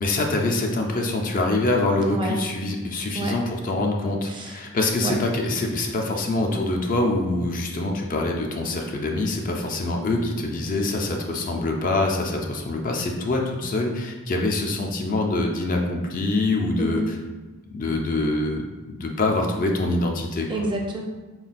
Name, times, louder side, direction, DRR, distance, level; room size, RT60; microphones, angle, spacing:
voice 1, 0.0-17.0 17.7-20.5, left 2 dB, 40° left, 2 dB, 0.4 m, -25 dB
voice 2, 2.1-2.4 3.1-3.3 4.2-4.6 5.0-5.2 16.8-17.0 20.5-21.0, right 1 dB, 20° right, 0 dB, 0.4 m, -28 dB
4.0 x 2.2 x 4.0 m, 1.2 s
head